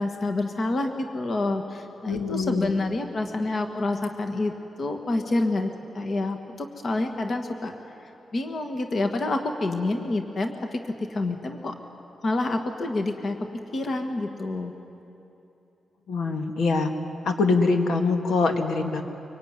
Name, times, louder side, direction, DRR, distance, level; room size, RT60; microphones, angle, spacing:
voice 1, 0.0-7.7 8.3-11.7 12.2-13.4 13.7-14.7, left 2 dB, 40° left, 5 dB, 1.5 m, -28 dB
voice 2, 2.0-2.7 16.1-16.9 17.2-19.0, left 3 dB, 85° left, 4 dB, 2.2 m, -24 dB
24.5 x 24.0 x 9.6 m, 2.9 s
wide cardioid pair, 180°, 0 cm